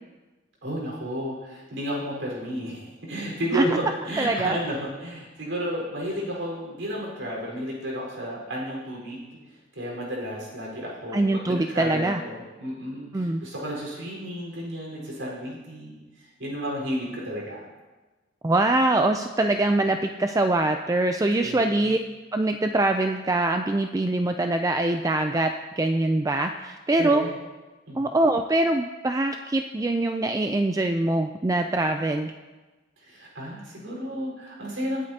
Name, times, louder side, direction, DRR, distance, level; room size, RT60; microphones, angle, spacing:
voice 1, 0.6-11.4 11.7-17.6 21.3-21.9 27.0-27.3 27.9-28.1 33.0-35.0, equal, 90° right, -3 dB, 4.5 m, -32 dB
voice 2, 4.2-4.6 11.1-12.2 13.1-13.4 18.4-22.0 22.3-27.2 28.0-32.3, right 2 dB, 20° right, 6 dB, 0.4 m, -23 dB
20.0 x 8.5 x 2.8 m, 1.2 s
head